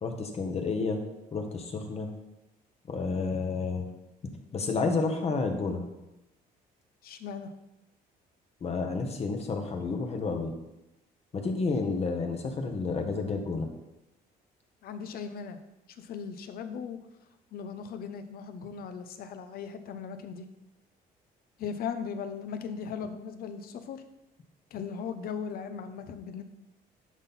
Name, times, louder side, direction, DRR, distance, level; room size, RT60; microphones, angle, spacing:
voice 1, 0.0-1.0 1.3-2.1 2.9-3.9 4.5-5.9 8.6-10.5 11.3-13.7, left 4 dB, 40° left, 5 dB, 1.2 m, -30 dB
voice 2, 7.0-7.5 14.8-15.6 15.9-17.0 17.5-20.4 21.6-24.0 24.7-26.4, left 6 dB, 65° left, 9 dB, 0.8 m, -38 dB
10.5 x 4.1 x 4.2 m, 0.93 s
cardioid pair, 110°, 17 cm